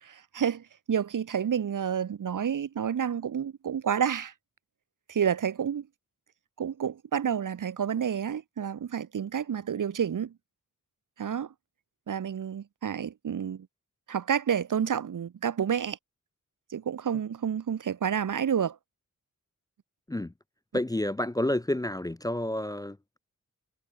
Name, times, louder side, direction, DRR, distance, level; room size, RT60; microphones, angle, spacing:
voice 1, 0.0-4.3 5.1-5.9 6.6-10.3 11.2-11.5 12.1-13.7 14.1-16.0 16.7-18.8, right 8 dB, 75° right, 1.1 m, -29 dB
voice 2, 20.7-23.2, left 1 dB, 10° left, 0.5 m, -30 dB
wide cardioid pair, 145°, 32 cm